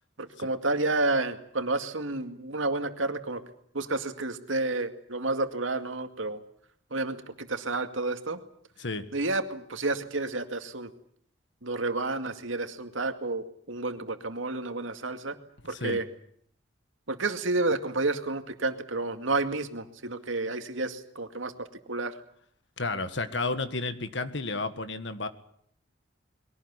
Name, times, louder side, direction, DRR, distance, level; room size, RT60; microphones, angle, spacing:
voice 1, 0.2-3.4 3.7-6.4 6.9-8.4 9.1-10.9 11.6-15.4 15.7-16.0 17.1-22.2, right 2 dB, 90° right, 7 dB, 2.2 m, -30 dB
voice 2, 22.8-25.3, left 3 dB, 70° left, 10 dB, 1.7 m, -32 dB
22.5 x 18.0 x 9.8 m, 0.66 s
head